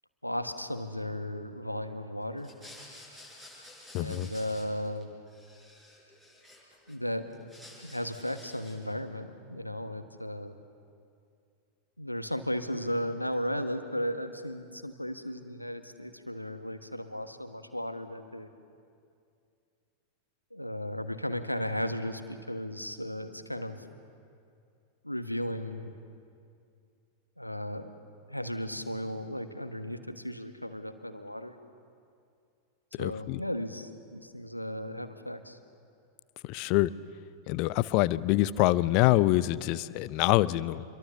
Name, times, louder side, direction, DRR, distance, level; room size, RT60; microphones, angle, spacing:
voice 1, 0.2-2.5 4.0-5.1 6.9-7.3 7.8-10.5 12.0-18.5 20.5-23.8 25.0-25.9 27.4-27.9 28.3-31.5 33.0-35.6, equal, 90° left, 9 dB, 1.2 m, -35 dB
sound 1, 2.4-5.0 5.3-6.9 7.3-8.9, left 1 dB, 10° right, 7.2 m, -52 dB
voice 2, 3.9-4.3 32.9-33.4 36.4-36.9 37.5-40.8, left 17 dB, 45° left, 19 dB, 0.6 m, -25 dB
27.0 x 22.5 x 7.1 m, 2.4 s
figure-of-eight pair, 90°, 0 cm